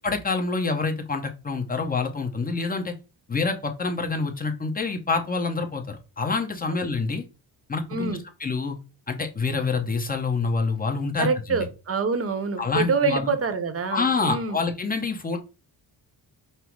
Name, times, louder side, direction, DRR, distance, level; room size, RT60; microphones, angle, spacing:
voice 1, 0.0-2.9 3.3-7.2 7.7-8.8 9.1-11.7 12.6-13.3 13.9-15.4, left 4 dB, 20° left, 5 dB, 0.8 m, -27 dB
voice 2, 11.2-14.6, right 4 dB, 35° right, 10 dB, 0.8 m, -26 dB
5.5 x 2.0 x 4.6 m, 0.31 s
cardioid pair, 125°, 42 cm